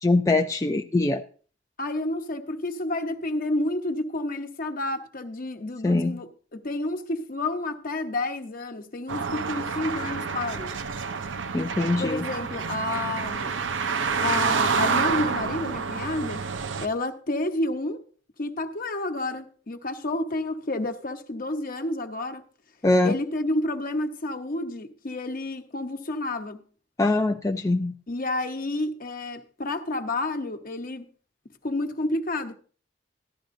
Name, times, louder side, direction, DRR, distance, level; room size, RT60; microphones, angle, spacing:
voice 1, 0.0-1.2 5.8-6.2 11.5-12.2 22.8-23.1 27.0-27.9, left 2 dB, 15° left, 0.4 m, -22 dB
voice 2, 1.8-10.8 12.0-13.5 14.2-16.4 16.8-18.0 18.4-22.4 23.0-26.6 28.1-31.0 31.6-32.6, left 2 dB, 50° left, 1.0 m, -30 dB
sound 1, 9.1-16.9, right 5 dB, 75° right, 0.6 m, -28 dB
14.5 x 11.5 x 2.6 m
head